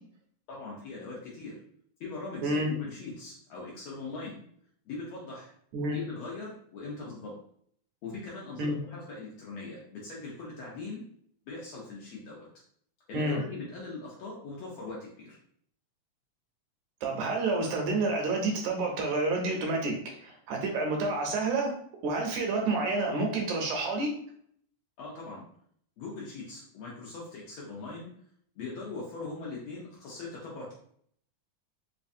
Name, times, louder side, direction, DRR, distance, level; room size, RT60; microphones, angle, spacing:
voice 1, 0.5-1.6 2.0-4.4 4.9-5.5 5.9-7.3 8.0-11.0 11.5-12.5 13.1-15.4 25.0-25.4 26.0-28.1 28.6-30.7, left 3 dB, 70° left, -4 dB, 1.6 m, -41 dB
voice 2, 17.0-20.0 20.2-21.7 22.0-24.1, right 3 dB, 80° right, 1 dB, 1.8 m, -29 dB
4.7 x 2.3 x 2.6 m, 0.64 s
omnidirectional pair, 3.6 m